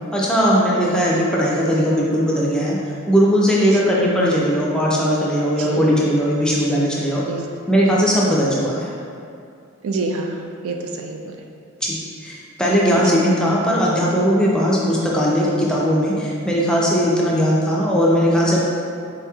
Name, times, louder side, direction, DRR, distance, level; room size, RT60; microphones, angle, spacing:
voice 1, 0.1-2.8 3.1-7.2 7.7-8.9 11.8-12.0 12.2-18.6, equal, 5° left, -5 dB, 0.4 m, -18 dB
voice 2, 5.6-5.9 7.3-7.4 9.8-11.2 13.1-13.2, right 3 dB, 75° right, 2 dB, 0.3 m, -27 dB
4.0 x 2.9 x 2.3 m, 2.4 s
head